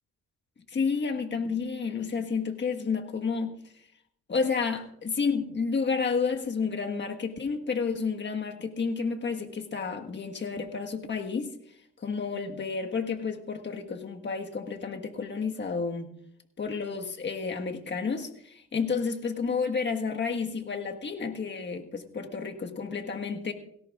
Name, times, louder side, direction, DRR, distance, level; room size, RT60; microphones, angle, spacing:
voice 1, 0.7-3.5 4.3-11.5 12.0-16.1 16.6-23.5, left 5 dB, 35° left, 4 dB, 1.5 m, -31 dB
17.5 x 17.0 x 2.4 m, 0.69 s
cardioid pair, 90°, 30 cm